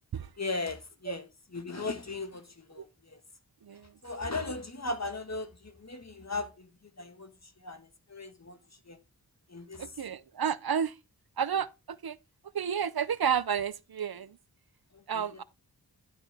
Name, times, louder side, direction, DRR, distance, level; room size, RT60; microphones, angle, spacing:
voice 1, 0.4-2.9 3.1-3.2 4.0-6.7 7.0-7.3 7.6-8.6 8.9-9.0 9.5-9.9 15.1-15.4, left 3 dB, 40° left, 1.6 m, -37 dB
voice 2, 9.8-10.9 11.4-12.2 12.5-14.4 15.1-15.4, right 7 dB, 65° right, 0.7 m, -31 dB
12.0 x 5.2 x 3.5 m
cardioid pair, 45°, 40 cm